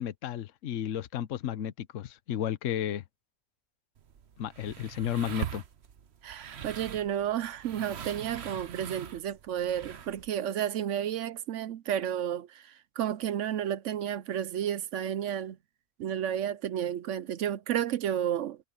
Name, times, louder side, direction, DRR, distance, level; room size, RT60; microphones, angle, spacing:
voice 1, 0.0-3.0 4.4-5.6, left 10 dB, 60° left, 1.1 m, -33 dB
sound 1, 4.0-10.3, right 8 dB, 50° right, 1.1 m, -42 dB
voice 2, 6.2-15.6 16.0-18.6, right 10 dB, 65° right, 0.8 m, -32 dB
omnidirectional pair, 1.6 m